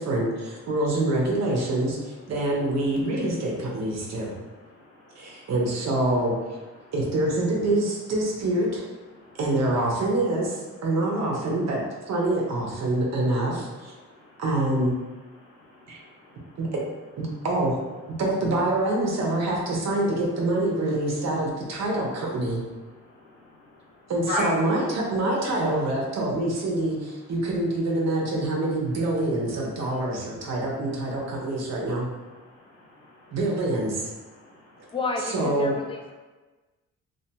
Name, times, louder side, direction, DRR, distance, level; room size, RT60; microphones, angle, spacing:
voice 1, 0.0-4.3 5.2-6.3 6.9-8.8 9.4-13.9 14.4-15.0 15.9-16.0 16.6-16.8 17.2-17.8 18.2-22.6 24.1-32.1 33.3-34.1 35.3-35.7, right 1 dB, 60° right, -2 dB, 0.8 m, -26 dB
voice 2, 4.8-5.5 6.8-6.9 9.1-9.4 14.1-14.4 15.4-16.6 23.0-23.8 24.3-24.5 32.5-33.4 34.4-34.9, left 1 dB, 80° left, -11 dB, 0.9 m, -37 dB
voice 3, 34.9-36.1, left 3 dB, 20° left, 2 dB, 0.3 m, -30 dB
2.8 x 2.4 x 2.2 m, 1.2 s
cardioid pair, 90°, 30 cm